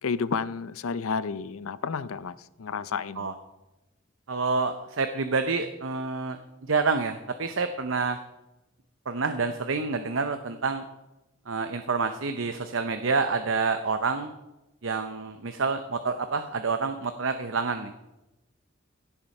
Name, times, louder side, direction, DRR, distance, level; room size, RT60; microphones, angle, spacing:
voice 1, 0.0-3.3, left 5 dB, 90° left, 0.5 m, -31 dB
voice 2, 4.3-6.4 6.7-8.2 9.1-10.8 11.5-14.3 14.8-18.0, right 4 dB, 70° right, 0.7 m, -28 dB
16.5 x 7.2 x 5.4 m
head